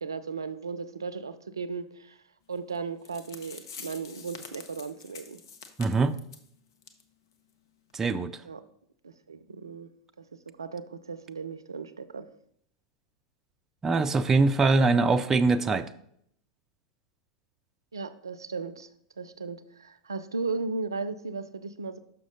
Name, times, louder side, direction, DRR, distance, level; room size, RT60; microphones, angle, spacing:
voice 1, 0.0-2.2 2.5-5.4 8.5-8.6 9.0-9.9 10.2-10.3 10.6-12.3 17.9-18.9 19.2-22.0, right 4 dB, 80° right, 13 dB, 0.4 m, -36 dB
sound 1, 2.7-2.8 3.0-6.5 6.8-7.0 7.3-7.4 7.9-8.0, left 5 dB, 65° left, 0.8 m, -46 dB
voice 2, 5.8-6.1 7.9-8.3 13.8-15.9, right 3 dB, 20° right, 9 dB, 0.4 m, -23 dB
6.2 x 5.8 x 3.8 m, 0.69 s
figure-of-eight pair, 90°, 2 cm